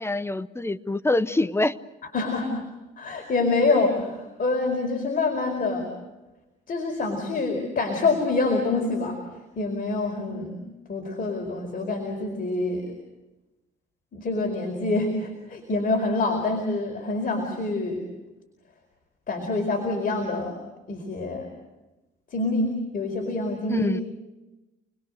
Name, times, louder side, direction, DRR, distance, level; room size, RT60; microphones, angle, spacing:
voice 1, 0.0-1.7 23.7-24.0, left 2 dB, 10° left, 14 dB, 0.8 m, -25 dB
voice 2, 2.1-2.5 3.0-5.9 6.7-9.2 9.5-10.6 10.9-12.9 14.1-18.0 19.3-20.6 20.9-21.5 22.3-23.9, left 3 dB, 45° left, 2 dB, 4.8 m, -26 dB
29.5 x 21.0 x 6.5 m, 1.1 s
cardioid pair, 90°, 20 cm